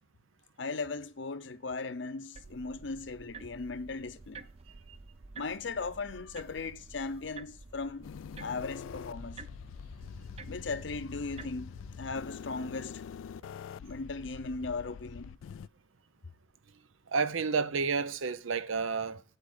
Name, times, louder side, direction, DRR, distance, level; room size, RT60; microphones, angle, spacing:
voice 1, 0.6-4.5 5.3-8.1 8.4-9.4 10.5-11.7 12.0-13.0 13.8-15.4, left 4 dB, 65° left, 0.7 m, -37 dB
sound 1, 2.3-12.3, right 4 dB, 30° right, 0.4 m, -51 dB
sound 2, 8.0-15.7, left 7 dB, 80° left, 0.3 m, -45 dB
voice 2, 17.1-19.2, right 5 dB, 85° right, 0.7 m, -30 dB
8.1 x 8.0 x 3.8 m
head